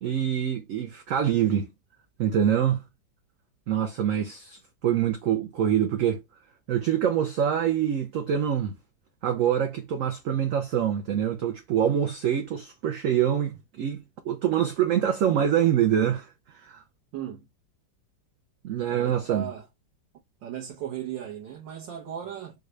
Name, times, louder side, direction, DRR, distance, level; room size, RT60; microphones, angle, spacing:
voice 1, 0.0-1.7 2.2-2.9 3.7-6.2 6.7-8.8 9.2-16.3 16.6-16.8 18.6-19.4, right 9 dB, 65° right, 0.8 m, -25 dB
voice 2, 17.1-17.5 18.9-19.7 20.4-22.5, right 10 dB, 85° right, 1.6 m, -36 dB
4.0 x 2.3 x 3.1 m
omnidirectional pair, 1.9 m